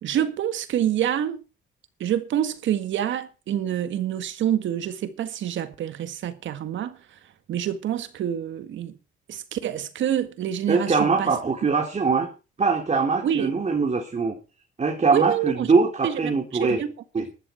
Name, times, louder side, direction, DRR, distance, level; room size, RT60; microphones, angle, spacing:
voice 1, 0.0-1.4 2.0-7.2 7.5-9.0 9.3-11.3 13.2-13.6 15.1-15.7 16.0-16.9, right 10 dB, 75° right, 1.8 m, -27 dB
voice 2, 10.7-12.3 12.6-14.4 14.8-16.8 17.1-17.3, right 4 dB, 35° right, 3.4 m, -22 dB
13.5 x 12.5 x 4.6 m
cardioid pair, 90°, 20 cm